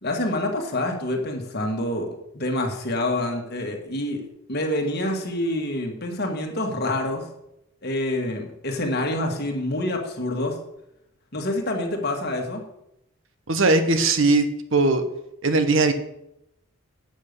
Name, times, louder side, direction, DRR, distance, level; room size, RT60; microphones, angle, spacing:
voice 1, 0.0-4.2 4.5-7.2 7.8-10.6 11.3-12.6, left 1 dB, 45° left, 2 dB, 1.7 m, -27 dB
voice 2, 13.5-15.0 15.4-15.9, right 3 dB, 60° right, 8 dB, 1.1 m, -19 dB
8.8 x 6.6 x 6.8 m, 0.83 s
head